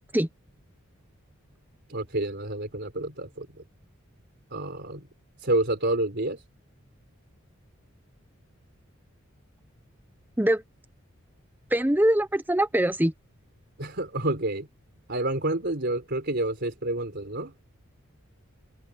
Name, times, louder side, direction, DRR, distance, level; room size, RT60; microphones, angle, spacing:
voice 1, 1.9-3.6 4.5-5.1 5.4-6.4 13.8-14.7 15.1-17.5, right 1 dB, 55° right, 4.3 m, -29 dB
voice 2, 11.7-13.1, right 1 dB, 10° right, 0.9 m, -22 dB
open air
head